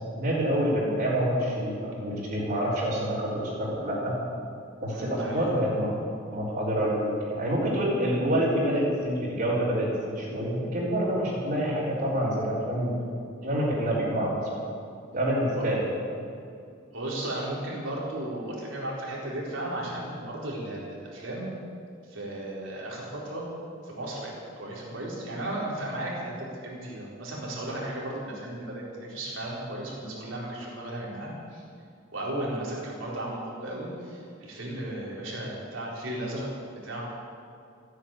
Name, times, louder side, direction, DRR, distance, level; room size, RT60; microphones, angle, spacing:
voice 1, 0.2-4.2 4.8-5.9 6.3-12.9 13.4-14.4 15.1-15.8, equal, 50° right, -9 dB, 3.9 m, -27 dB
voice 2, 4.9-5.5 15.5-15.6 16.9-21.5 22.1-23.4 23.8-31.6 32.1-37.0, right 1 dB, 75° right, -4 dB, 4.4 m, -35 dB
14.5 x 10.0 x 8.7 m, 2.5 s
head